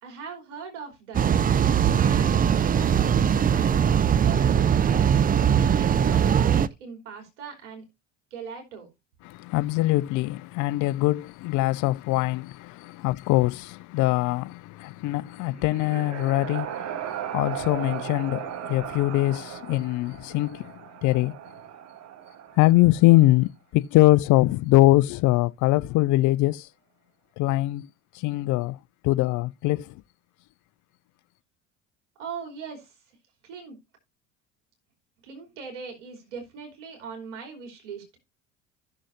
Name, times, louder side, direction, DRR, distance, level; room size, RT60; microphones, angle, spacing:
voice 1, 0.0-1.3 2.0-3.8 4.2-5.2 5.6-7.8 8.3-8.9 32.2-32.9 33.4-33.8 35.2-38.0, right 5 dB, 75° right, 3.4 m, -40 dB
sound 1, 1.1-6.7, right 8 dB, 25° right, 0.5 m, -21 dB
voice 2, 9.2-21.4 22.6-26.7 27.4-27.9 28.1-28.8 29.0-30.0, left 18 dB, 55° left, 0.6 m, -23 dB
sound 2, 15.2-23.1, right 10 dB, 45° right, 1.1 m, -37 dB
15.5 x 6.3 x 2.6 m
hypercardioid pair, 65°, 36 cm